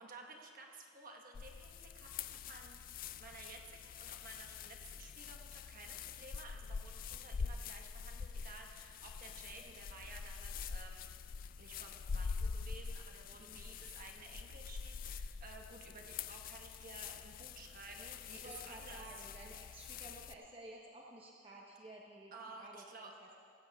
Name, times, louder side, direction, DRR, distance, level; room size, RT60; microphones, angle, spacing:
voice 1, 0.0-2.8 3.2-11.1 11.6-19.0 22.3-23.1, right 3 dB, 50° right, 2 dB, 1.3 m, -54 dB
sound 1, 1.3-20.3, left 5 dB, 50° left, 0.3 m, -45 dB
voice 2, 18.3-23.4, right 1 dB, 30° right, -2 dB, 1.0 m, -54 dB
18.0 x 16.0 x 2.4 m, 2.5 s
head